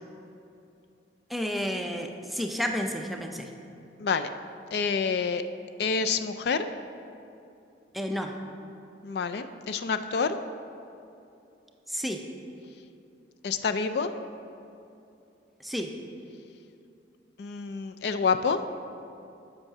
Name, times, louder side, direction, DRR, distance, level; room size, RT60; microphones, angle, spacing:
voice 1, 1.3-3.5 7.9-8.3 11.9-12.2 15.6-15.9, equal, ahead, 2 dB, 0.5 m, -31 dB
voice 2, 4.0-4.3 4.7-5.4 5.8-6.7 9.0-10.4 13.4-14.1 17.4-18.6, left 5 dB, 65° left, 9 dB, 0.4 m, -27 dB
8.0 x 5.7 x 5.9 m, 2.7 s
head